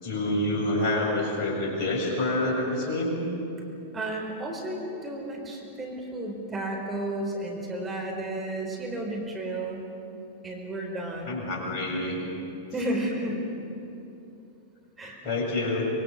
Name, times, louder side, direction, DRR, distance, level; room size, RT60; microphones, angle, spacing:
voice 1, 0.0-3.2 11.3-12.2 15.2-15.9, left 1 dB, 45° left, -1 dB, 7.2 m, -27 dB
voice 2, 3.9-9.8 10.4-11.4 12.7-13.4 15.0-15.2, right 1 dB, 20° right, 0 dB, 4.7 m, -32 dB
25.0 x 23.0 x 6.8 m, 2.8 s
figure-of-eight pair, 100°, 0 cm